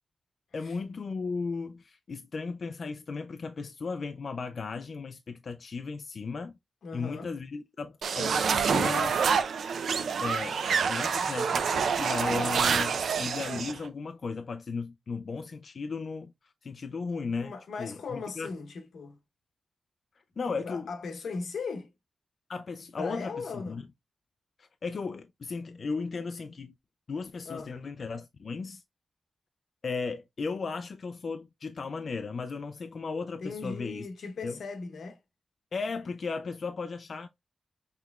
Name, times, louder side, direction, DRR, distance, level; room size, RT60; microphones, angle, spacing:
voice 1, 0.5-6.5 6.9-9.2 10.2-10.6 10.9-18.5 20.4-20.9 22.5-23.8 24.6-26.7 27.1-28.8 29.8-34.1 34.4-34.6 35.7-37.3, left 4 dB, 50° left, 0.3 m, -36 dB
voice 2, 6.8-7.3 17.4-19.2 20.6-21.9 23.0-23.8 27.4-27.8 33.4-35.2, left 4 dB, 85° left, 1.0 m, -38 dB
sound 1, 8.0-13.8, right 6 dB, 85° right, 0.5 m, -27 dB
5.7 x 3.0 x 2.3 m
wide cardioid pair, 125°, 0 cm